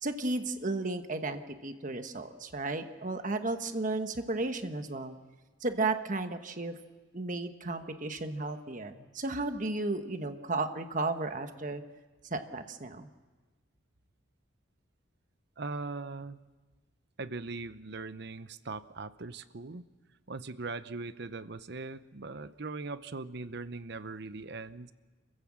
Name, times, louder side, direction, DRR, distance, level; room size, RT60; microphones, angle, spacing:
voice 1, 0.0-5.1 5.6-6.7 7.1-11.8 12.3-13.1, right 2 dB, 40° right, 7 dB, 1.2 m, -34 dB
voice 2, 15.6-16.4 17.2-19.8 20.3-24.9, right 3 dB, 60° right, 13 dB, 0.8 m, -40 dB
27.5 x 15.5 x 7.4 m, 1.3 s
head